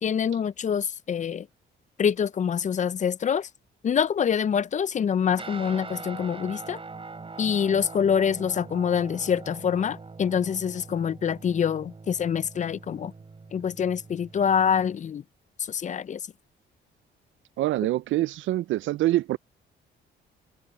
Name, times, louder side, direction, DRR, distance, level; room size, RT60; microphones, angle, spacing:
voice 1, 0.0-1.5 2.0-3.5 3.8-6.8 7.4-13.1 13.5-15.2 15.7-16.2, left 7 dB, 40° left, 0.5 m, -25 dB
Guitar, 5.3-15.0, right 4 dB, 25° right, 4.5 m, -43 dB
voice 2, 17.6-19.4, right 15 dB, 75° right, 0.5 m, -25 dB
cardioid pair, 90°, 20 cm